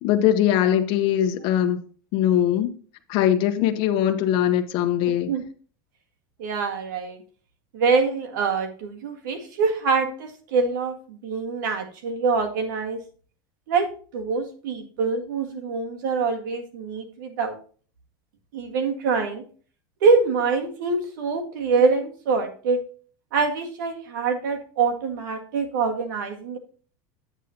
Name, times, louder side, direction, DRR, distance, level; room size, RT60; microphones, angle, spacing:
voice 1, 0.0-1.8 2.1-2.7 3.1-5.3, left 10 dB, 55° left, 1.0 m, -21 dB
voice 2, 5.1-5.4 6.4-7.2 7.7-13.0 13.7-17.6 18.5-19.4 20.0-22.8 23.3-26.6, right 4 dB, 85° right, 1.8 m, -25 dB
10.0 x 8.1 x 2.9 m
supercardioid pair, 130°, 10 cm